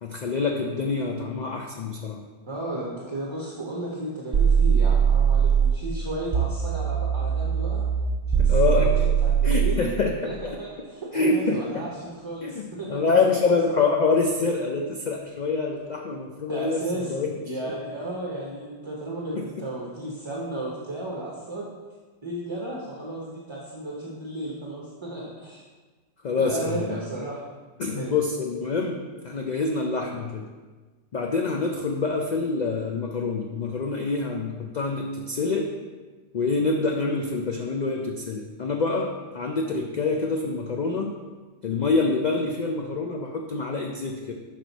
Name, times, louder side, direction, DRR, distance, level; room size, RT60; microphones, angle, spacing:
voice 1, 0.0-2.2 8.4-8.9 9.4-10.4 11.1-11.8 12.4-12.6 12.9-16.8 17.1-17.3 26.2-27.0 27.8-29.0 29.2-30.5 31.1-35.7 36.3-41.1 41.6-44.3, left 4 dB, 80° left, 1 dB, 0.4 m, -26 dB
voice 2, 2.5-7.8 8.3-9.9 10.2-13.0 13.7-13.8 16.5-21.7 22.2-25.6 26.4-27.4 28.0-28.2, right 1 dB, 30° right, -4 dB, 0.6 m, -34 dB
sound 1, 4.3-5.8 6.3-9.8, right 7 dB, 90° right, 0.3 m, -21 dB
6.1 x 4.6 x 4.0 m, 1.3 s
omnidirectional pair, 1.4 m